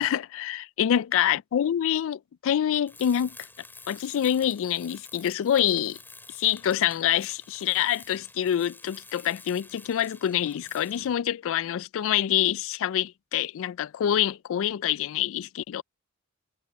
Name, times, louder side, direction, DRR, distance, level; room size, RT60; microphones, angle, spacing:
voice 1, 0.0-3.4 3.9-6.0 6.4-15.8, left 10 dB, 65° left, 0.3 m, -26 dB
Tools, 2.9-11.2, left 3 dB, 10° left, 4.8 m, -49 dB
head